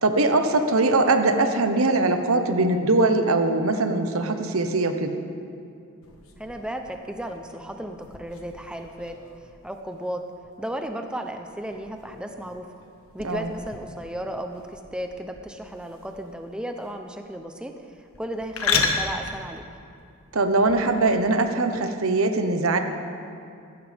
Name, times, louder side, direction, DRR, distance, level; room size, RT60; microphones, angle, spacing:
voice 1, 0.0-5.2 13.2-13.5 20.3-22.8, right 2 dB, 85° right, 7 dB, 1.1 m, -21 dB
sound 1, 6.0-21.1, left 5 dB, 85° left, 1.4 m, -35 dB
voice 2, 6.4-9.2 9.6-10.2 10.6-12.7 13.1-19.6, right 1 dB, 5° right, 5 dB, 0.6 m, -34 dB
18.0 x 15.0 x 3.5 m, 2.5 s
head